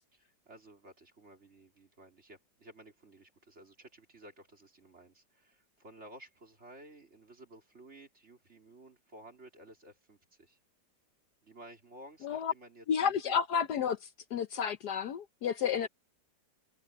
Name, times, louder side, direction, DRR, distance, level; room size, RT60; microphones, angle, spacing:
voice 1, 0.1-10.6 11.4-13.4 15.7-15.9, right 1 dB, 35° right, 3.8 m, -55 dB
voice 2, 12.9-14.0 14.3-15.9, left 7 dB, 65° left, 1.3 m, -31 dB
omnidirectional pair, 2.0 m